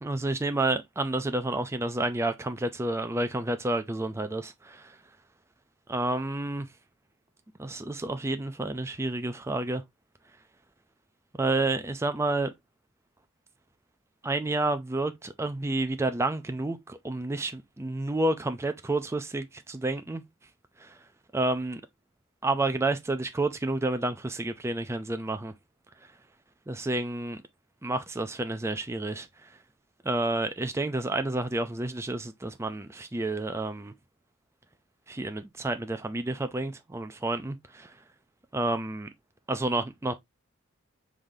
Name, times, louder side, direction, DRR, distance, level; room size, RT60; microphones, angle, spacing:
voice 1, 0.0-5.0 5.9-6.7 7.6-9.8 11.4-12.5 14.2-20.2 20.8-21.0 21.3-21.8 22.4-25.5 26.7-27.4 27.8-29.5 30.0-33.9 35.1-37.9 38.5-39.1 39.5-40.1, right 2 dB, 15° right, 0.4 m, -30 dB
5.0 x 3.7 x 2.6 m
head